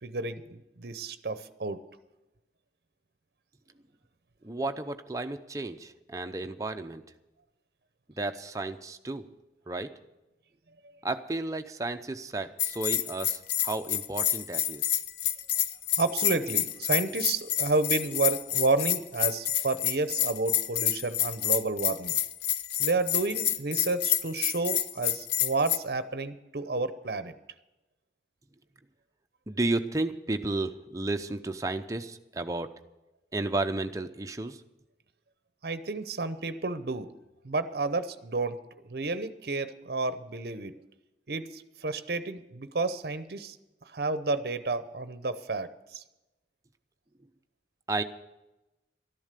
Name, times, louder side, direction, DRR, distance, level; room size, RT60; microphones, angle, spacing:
voice 1, 0.0-1.8 16.0-22.1 22.8-27.3 35.6-37.1 37.4-38.6 38.9-40.7 41.3-43.6 43.8-46.0, right 3 dB, 60° right, 12 dB, 0.7 m, -31 dB
voice 2, 4.4-7.0 8.2-9.3 9.7-9.9 11.0-14.9 29.5-32.7 33.3-34.6 47.9-48.0, right 2 dB, 20° right, 7 dB, 0.7 m, -33 dB
Bell, 12.6-25.8, left 10 dB, 70° left, 0.7 m, -28 dB
13.0 x 11.0 x 6.7 m, 1.0 s
head